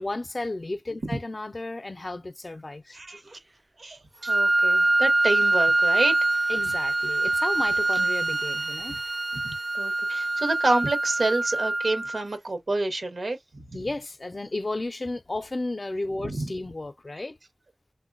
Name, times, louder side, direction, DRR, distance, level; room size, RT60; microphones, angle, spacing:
voice 1, 0.0-3.0 6.5-9.0 13.7-17.4, left 2 dB, 50° left, 0.4 m, -33 dB
voice 2, 2.9-3.4 3.8-6.2 8.9-9.0 9.3-9.4 9.7-13.7 16.2-16.5, right 2 dB, 85° right, 0.8 m, -28 dB
Wind instrument woodwind instrument, 4.2-12.2, right 2 dB, 35° right, 0.3 m, -24 dB
3.7 x 2.1 x 2.4 m
wide cardioid pair, 55°, 0 cm